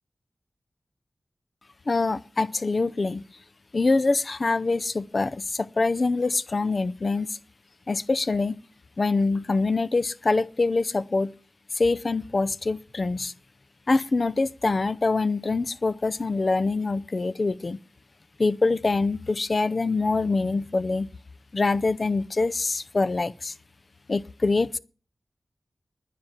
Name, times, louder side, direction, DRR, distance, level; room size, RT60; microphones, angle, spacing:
voice 1, 1.9-3.3 3.7-7.4 7.9-8.5 9.0-11.3 11.7-13.3 13.9-17.8 18.4-21.1 21.5-23.5 24.1-24.8, left 3 dB, 55° left, 0.6 m, -24 dB
10.5 x 10.0 x 7.3 m
wide cardioid pair, 65°, 0 cm